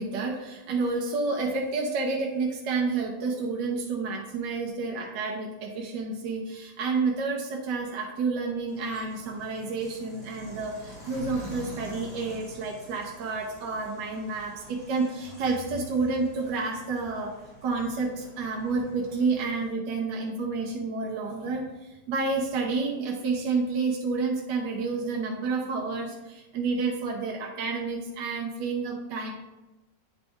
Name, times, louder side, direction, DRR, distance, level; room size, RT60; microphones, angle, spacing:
voice 1, 0.0-17.3 17.6-29.3, right 4 dB, 70° right, -1 dB, 1.4 m, -30 dB
sound 1, 8.7-19.7, equal, 90° left, 3.3 m, -46 dB
9.0 x 4.1 x 3.5 m, 1.1 s
omnidirectional pair, 2.0 m